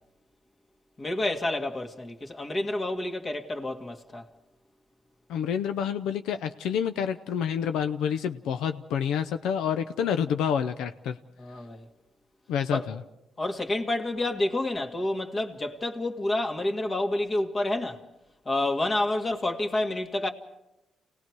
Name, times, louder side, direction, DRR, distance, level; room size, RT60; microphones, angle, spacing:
voice 1, 1.0-4.3 11.4-11.9 12.7-12.9 13.4-18.0 18.5-20.3, left 1 dB, 35° left, 2.0 m, -29 dB
voice 2, 5.3-11.2 12.5-13.0, left 8 dB, 90° left, 0.7 m, -28 dB
29.0 x 18.5 x 4.7 m
cardioid pair, 85°, 0 cm